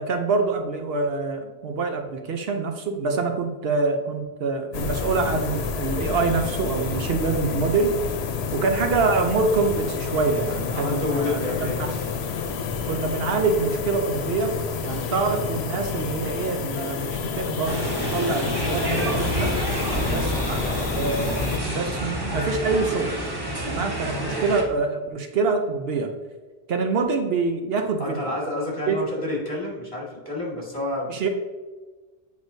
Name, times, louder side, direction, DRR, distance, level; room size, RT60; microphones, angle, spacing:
voice 1, 0.0-8.0 8.5-11.9 12.9-19.6 20.0-23.1 23.6-26.1 26.7-28.2 28.9-29.0 31.1-31.3, right 4 dB, 70° right, 5 dB, 0.9 m, -25 dB
sound 1, 4.7-21.6, left 5 dB, 80° left, 0.9 m, -29 dB
voice 2, 10.7-11.9 28.0-31.3, left 2 dB, 30° left, -3 dB, 2.0 m, -29 dB
sound 2, 17.7-24.6, equal, 25° right, 1.0 m, -28 dB
7.9 x 5.1 x 2.7 m, 1.3 s
omnidirectional pair, 1.0 m